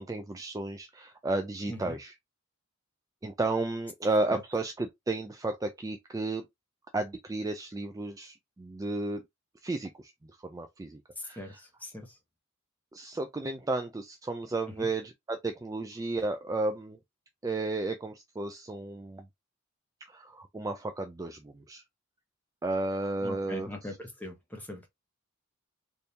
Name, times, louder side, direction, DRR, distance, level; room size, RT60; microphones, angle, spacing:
voice 1, 0.0-2.1 3.2-6.4 6.9-9.2 9.6-10.1 10.4-11.4 12.9-17.0 17.4-19.3 20.1-21.8 22.6-23.7, right 2 dB, 15° right, 0.3 m, -33 dB
voice 2, 11.2-12.2 14.7-14.9 23.2-24.9, left 1 dB, 10° left, 1.0 m, -41 dB
3.4 x 2.7 x 2.8 m
head